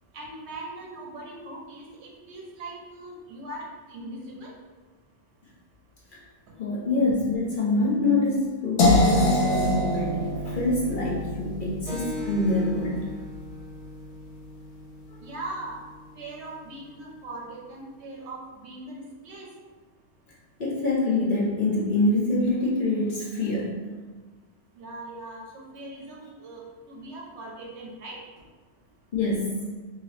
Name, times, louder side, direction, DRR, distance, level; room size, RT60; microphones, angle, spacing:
voice 1, 0.1-4.5 15.2-15.8 16.1-19.5 24.8-26.6 26.9-28.2, right 2 dB, 70° right, -1 dB, 0.9 m, -40 dB
voice 2, 6.6-13.1 15.1-15.2 20.6-23.8 29.1-29.6, left 2 dB, 55° left, -5 dB, 0.7 m, -25 dB
sound 1, 8.8-14.7, left 1 dB, 90° left, 0.9 m, -26 dB
Keyboard (musical), 11.9-16.9, left 2 dB, 5° right, 0.9 m, -41 dB
2.8 x 2.7 x 3.1 m, 1.3 s
omnidirectional pair, 1.2 m